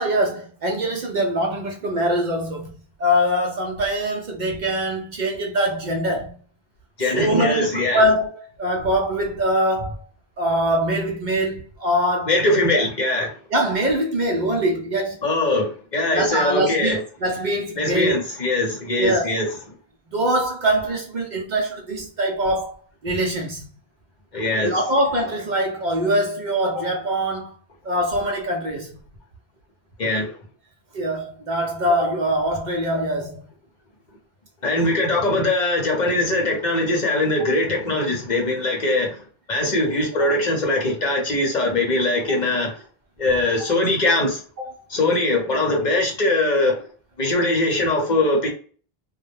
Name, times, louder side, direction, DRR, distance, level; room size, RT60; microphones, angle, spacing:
voice 1, 0.0-2.7 3.0-6.4 7.0-10.0 10.4-12.3 12.7-12.8 13.5-15.2 16.1-18.2 19.0-19.3 20.1-22.8 23.0-23.6 24.6-27.6 27.8-29.0 30.9-33.4 37.4-37.5 40.2-40.3 43.6-43.7 44.6-44.7, equal, 55° right, 0.6 m, -23 dB
voice 2, 7.0-8.0 12.3-13.4 15.2-17.0 17.8-19.5 24.3-24.7 30.0-30.4 34.6-39.2 39.5-42.8 43.2-44.4 44.9-46.9 47.2-48.5, left 2 dB, 50° left, 0.8 m, -21 dB
2.2 x 2.0 x 2.9 m
omnidirectional pair, 1.0 m